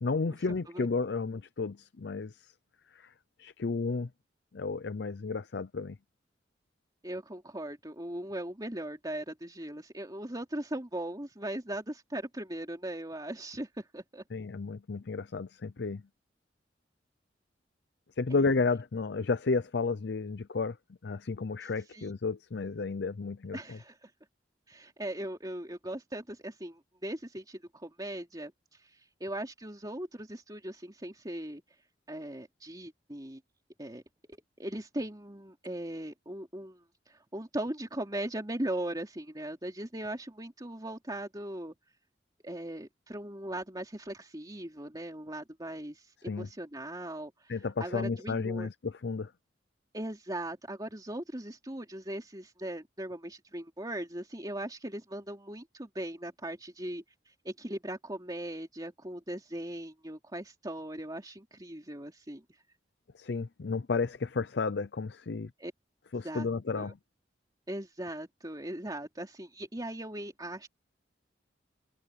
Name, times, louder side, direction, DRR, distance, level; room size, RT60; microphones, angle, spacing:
voice 1, 0.0-2.5 2.9-3.1 3.4-4.1 4.5-6.0 14.3-16.0 18.2-20.8 21.0-23.8 46.3-46.5 47.5-49.3 63.1-65.5 66.1-66.9, left 4 dB, 65° left, 0.6 m, -32 dB
voice 2, 7.0-14.2 18.3-18.4 21.9-22.1 23.5-24.1 24.7-31.6 32.1-33.4 33.8-34.0 34.3-41.7 42.4-47.5 47.8-48.7 49.9-62.4 65.6-65.7 66.2-66.5 66.7-66.9 67.7-70.7, right 1 dB, 20° right, 3.0 m, -39 dB
head